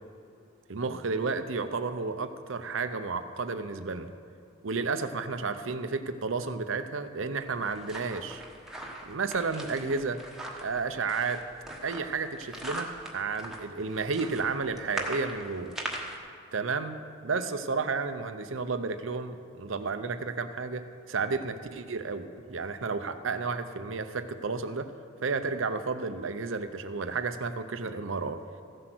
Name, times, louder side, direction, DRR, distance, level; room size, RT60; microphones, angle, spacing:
voice 1, 0.7-4.1 4.6-8.4 9.1-10.2 10.6-11.4 11.8-15.8 16.5-24.9 25.2-28.4, right 4 dB, 70° right, 10 dB, 0.7 m, -32 dB
sound 1, 7.4-16.2, right 1 dB, ahead, 1.2 m, -40 dB
15.0 x 7.8 x 6.2 m, 2.6 s
head